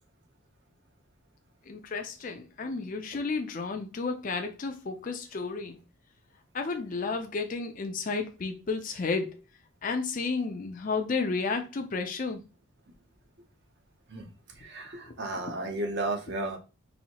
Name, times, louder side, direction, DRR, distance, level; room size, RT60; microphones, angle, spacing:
voice 1, 1.7-5.8 6.5-9.3 9.8-12.4 15.4-15.5, left 4 dB, 40° left, 0.4 m, -32 dB
voice 2, 14.6-16.6, right 2 dB, 50° right, 0.8 m, -33 dB
4.2 x 2.7 x 2.9 m
head